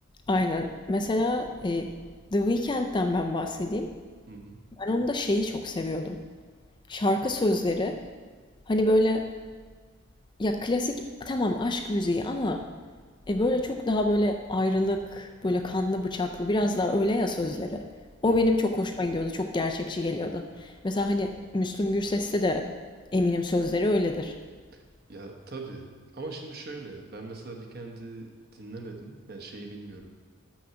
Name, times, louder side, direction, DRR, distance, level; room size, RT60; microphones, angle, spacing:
voice 1, 0.3-1.9 2.3-3.9 4.8-6.2 6.9-8.0 8.7-9.3 10.4-12.7 13.3-17.8 18.2-22.7 23.1-24.4, left 1 dB, 20° left, 5 dB, 0.4 m, -26 dB
voice 2, 4.3-4.6 18.2-18.4 24.7-24.8 25.1-25.9 26.1-30.1, right 3 dB, 45° right, 2 dB, 1.1 m, -41 dB
6.2 x 6.0 x 6.9 m, 1.5 s
head